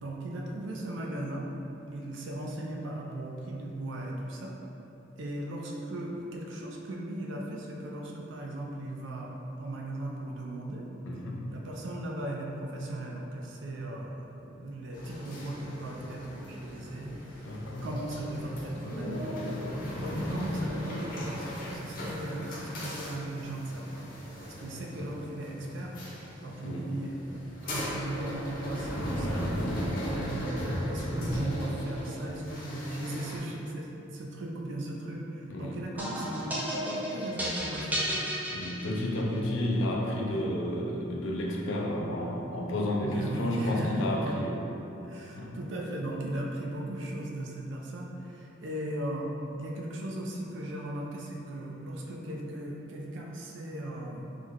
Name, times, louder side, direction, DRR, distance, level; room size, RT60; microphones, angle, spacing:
voice 1, 0.0-1.5 1.9-4.5 5.2-10.9 11.5-17.2 17.8-24.1 24.4-26.0 26.4-29.5 30.0-38.1 43.0-44.3 45.0-54.3, right 1 dB, 75° right, -1 dB, 0.4 m, -37 dB
voice 2, 11.0-11.5 17.4-17.9 24.9-25.1 26.6-26.9 35.5-35.8 38.5-44.7 45.3-45.6, left 1 dB, 90° left, -1 dB, 0.5 m, -31 dB
Aalen Hotel Lift Ride, 14.9-33.4, equal, 45° left, 0.6 m, -36 dB
sound 1, 36.0-39.4, equal, 10° right, 0.4 m, -33 dB
3.2 x 2.1 x 3.6 m, 2.9 s
head